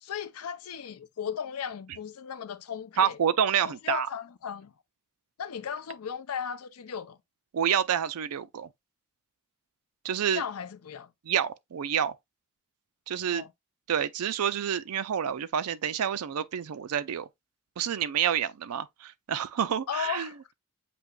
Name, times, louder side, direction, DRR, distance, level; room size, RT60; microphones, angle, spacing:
voice 1, 0.0-3.2 3.6-4.7 5.4-7.2 10.3-11.1 13.3-13.5 19.9-20.5, left 7 dB, 85° left, 0.5 m, -36 dB
voice 2, 3.0-4.1 7.5-8.7 10.0-10.4 11.3-12.1 13.1-13.4 13.9-17.3 17.8-20.3, right 8 dB, 85° right, 0.4 m, -28 dB
7.6 x 2.9 x 2.2 m
head